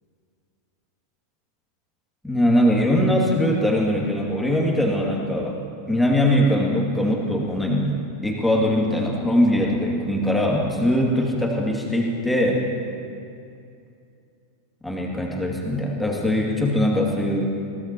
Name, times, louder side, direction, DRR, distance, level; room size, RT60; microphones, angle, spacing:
voice 1, 2.2-5.6 5.9-12.7 14.8-17.5, equal, 5° left, -2 dB, 2.4 m, -21 dB
22.5 x 17.0 x 3.0 m, 2.5 s
figure-of-eight pair, 90°, 0 cm